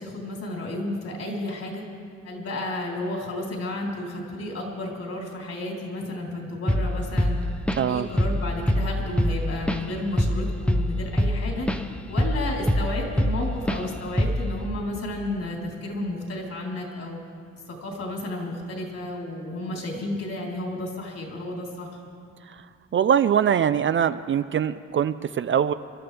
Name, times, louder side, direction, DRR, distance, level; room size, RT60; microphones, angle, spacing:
voice 1, 0.0-1.8 2.2-7.4 7.8-11.7 12.1-17.2 17.7-22.0, left 1 dB, 55° left, -2 dB, 3.8 m, -32 dB
Drum kit / Drum, 6.7-6.9 7.2-7.9 8.2-8.4 8.7-11.8 12.2-13.4 13.7-13.9 14.2-14.5, equal, 5° left, 0.7 m, -23 dB
voice 2, 7.8-8.1 22.9-25.7, right 8 dB, 40° right, 12 dB, 0.5 m, -22 dB
27.0 x 12.0 x 3.4 m, 2.2 s
cardioid pair, 90°, 30 cm